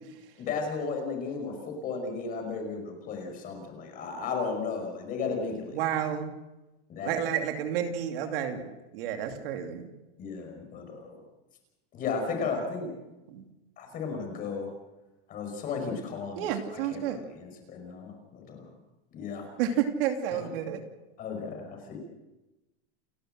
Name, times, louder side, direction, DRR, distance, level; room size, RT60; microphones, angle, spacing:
voice 1, 0.4-5.8 6.9-7.2 10.2-11.2 11.9-12.9 13.8-14.7 15.3-16.5 16.9-18.6 19.1-19.4 21.2-22.0, left 4 dB, 25° left, 4 dB, 5.3 m, -34 dB
voice 2, 5.7-6.3 7.0-9.9 13.3-13.4 16.4-17.2 19.6-20.8, right 9 dB, 60° right, 5 dB, 2.8 m, -30 dB
29.5 x 12.5 x 7.8 m, 1.0 s
supercardioid pair, 170°, 32 cm